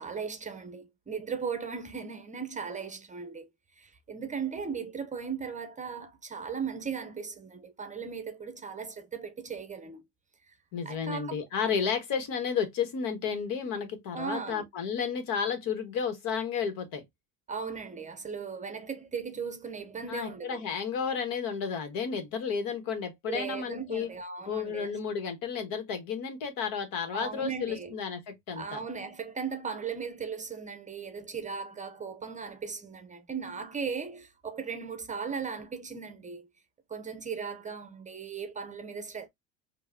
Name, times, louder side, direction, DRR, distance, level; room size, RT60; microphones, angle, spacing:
voice 1, 0.0-3.5 3.8-10.0 10.9-11.4 14.1-14.6 17.5-20.6 23.3-24.9 27.1-28.0 28.5-36.5 36.9-39.3, right 6 dB, 20° right, 0.7 m, -37 dB
voice 2, 10.7-17.0 20.1-24.1 24.4-28.8, left 6 dB, 65° left, 1.6 m, -32 dB
4.7 x 2.7 x 2.7 m
supercardioid pair, 105°, 37 cm